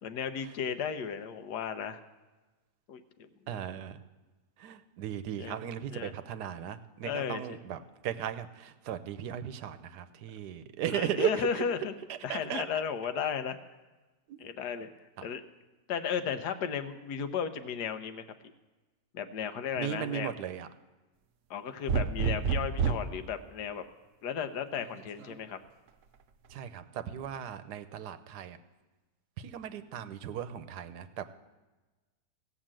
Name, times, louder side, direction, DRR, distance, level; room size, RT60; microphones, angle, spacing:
voice 1, 0.0-2.0 2.9-3.6 5.4-5.6 5.9-6.1 7.0-7.6 10.9-11.9 12.2-13.6 14.4-14.9 15.2-15.4 15.9-18.2 19.1-20.3 21.5-23.8 24.2-25.6, left 7 dB, 80° left, 9 dB, 1.4 m, -34 dB
voice 2, 3.5-4.0 4.6-11.6 12.1-12.8 14.3-14.4 15.2-15.3 19.8-20.7 26.5-28.6 29.4-31.2, right 10 dB, 85° right, 11 dB, 1.3 m, -36 dB
sound 1, 21.9-23.2 24.8-25.3, right 6 dB, 65° right, 0.9 m, -29 dB
16.5 x 6.4 x 7.5 m, 1.2 s
omnidirectional pair, 1.7 m